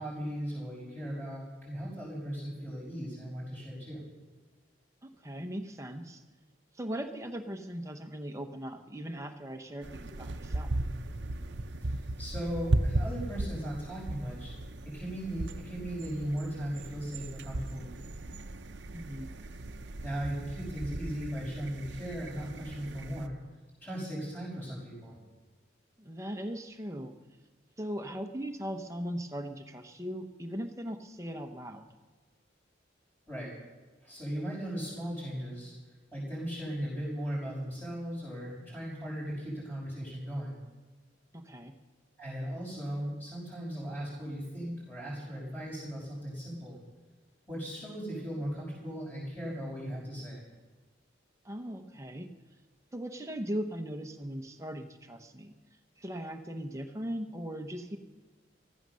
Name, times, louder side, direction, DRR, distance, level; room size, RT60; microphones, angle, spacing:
voice 1, 0.0-4.0 11.8-14.5 14.9-18.1 20.0-23.4 23.8-25.2 33.3-33.5 34.0-35.7 36.1-40.6 42.2-46.8 47.5-50.4, equal, 10° left, -9 dB, 5.6 m, -37 dB
voice 2, 5.0-6.2 6.7-10.7 18.9-19.3 26.0-27.1 27.8-31.9 41.3-41.7 51.4-52.3 52.9-55.6 56.0-58.0, equal, 15° right, 6 dB, 0.9 m, -39 dB
sound 1, 9.8-23.3, right 2 dB, 60° right, 0.7 m, -36 dB
15.0 x 14.5 x 6.4 m, 1.3 s
head